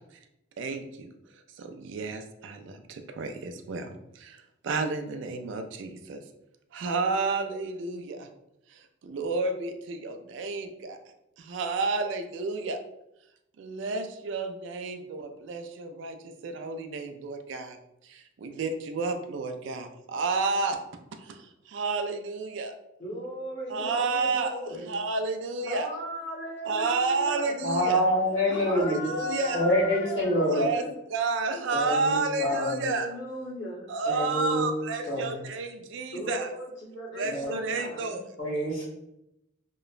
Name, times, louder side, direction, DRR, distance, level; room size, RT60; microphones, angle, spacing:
voice 1, 0.6-1.1 1.6-3.9 4.2-4.3 4.6-6.2 6.7-8.3 9.0-11.0 11.5-12.8 13.6-16.2 16.4-17.8 18.4-20.8 21.7-22.7 23.7-25.9 26.7-28.1 28.6-29.7 30.5-33.1 33.9-36.5 37.1-38.2, right 3 dB, 65° right, 7 dB, 0.3 m, -31 dB
voice 2, 23.0-24.9 25.6-27.6 28.5-30.9 32.4-33.9 36.1-38.0, left 1 dB, 60° left, -4 dB, 0.7 m, -37 dB
voice 3, 27.6-29.0 29.5-30.7 31.7-32.9 34.0-34.7 35.1-35.3 37.3-37.5 38.4-38.9, equal, 80° left, -6 dB, 1.4 m, -26 dB
2.9 x 2.0 x 2.4 m, 0.85 s
head